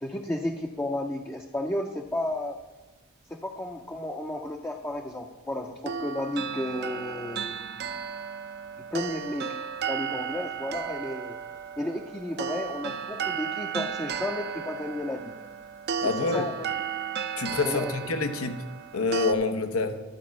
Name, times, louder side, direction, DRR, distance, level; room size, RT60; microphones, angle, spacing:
voice 1, 0.0-2.6 3.3-7.6 8.9-9.5 9.9-11.4 11.8-15.3 16.0-16.7 17.6-17.9, left 1 dB, 10° left, 2 dB, 0.5 m, -33 dB
sound 1, 5.9-19.3, right 7 dB, 50° right, 0.5 m, -34 dB
voice 2, 16.0-16.5 17.4-18.6 18.9-20.0, left 3 dB, 85° left, 8 dB, 0.9 m, -27 dB
11.5 x 4.6 x 7.5 m, 1.2 s
head